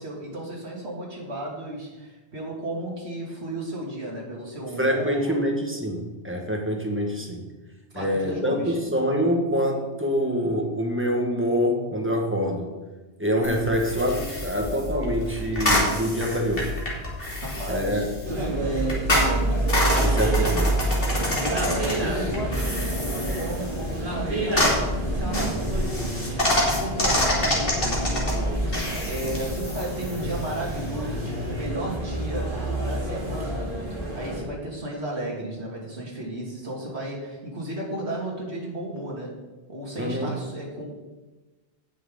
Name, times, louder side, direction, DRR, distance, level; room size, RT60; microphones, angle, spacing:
voice 1, 0.0-5.4 7.9-8.8 17.4-18.2 21.5-26.4 26.8-39.3 39.7-40.8, right 1 dB, 70° right, -3 dB, 3.2 m, -34 dB
voice 2, 4.8-7.5 7.9-12.7 13.2-16.7 17.7-18.1 20.0-20.8 40.0-40.4, equal, 10° right, 1 dB, 1.7 m, -25 dB
sound 1, 13.4-31.6, left 1 dB, 55° left, 2.9 m, -28 dB
sound 2, 18.2-34.4, right 2 dB, 50° right, 2.4 m, -28 dB
17.5 x 6.4 x 3.9 m, 1.2 s
omnidirectional pair, 1.2 m